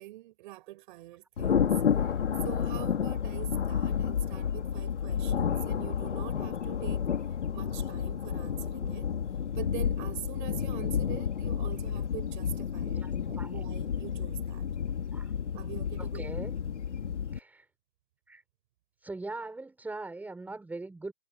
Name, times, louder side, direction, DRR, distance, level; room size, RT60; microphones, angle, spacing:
voice 1, 0.0-2.1 2.4-7.1 7.5-9.1 9.6-14.7 15.5-16.4, right 17 dB, 45° right, 6.4 m, -44 dB
Thunder, 1.4-17.4, left 8 dB, 85° left, 3.2 m, -31 dB
voice 2, 16.0-16.6 17.3-17.6 18.3-18.4 19.0-21.1, right 2 dB, 5° right, 6.6 m, -40 dB
hypercardioid pair, 150°, 34 cm